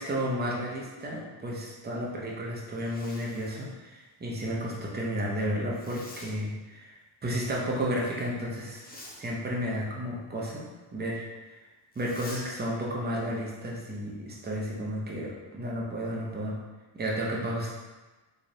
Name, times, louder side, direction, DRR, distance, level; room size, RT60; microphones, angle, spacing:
voice 1, 0.0-7.0 7.2-8.8 9.2-10.7 10.9-11.6 12.0-16.6 16.9-17.7, equal, 20° right, -3 dB, 0.7 m, -32 dB
Zipper (clothing), 2.6-3.7 5.7-6.3 8.7-9.2 11.9-12.4, left 2 dB, 20° left, 0.6 m, -47 dB
3.8 x 3.1 x 2.7 m, 1.2 s
cardioid pair, 110°, 48 cm